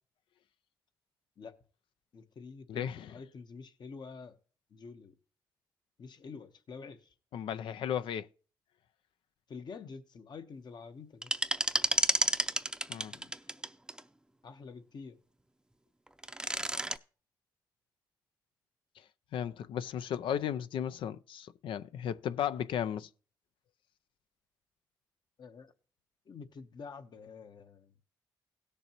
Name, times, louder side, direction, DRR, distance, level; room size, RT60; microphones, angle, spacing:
voice 1, 2.1-4.4 4.7-5.1 6.0-7.1 9.5-11.3 14.4-15.2 25.4-25.7 26.3-27.9, left 5 dB, 60° left, 1.0 m, -47 dB
voice 2, 2.7-3.1 7.3-8.3 12.9-13.1 19.3-23.1, left 9 dB, 75° left, 0.4 m, -35 dB
sound 1, 11.2-14.0 16.1-17.0, right 1 dB, 10° right, 0.6 m, -30 dB
17.0 x 6.8 x 3.0 m
supercardioid pair, 55°, 9 cm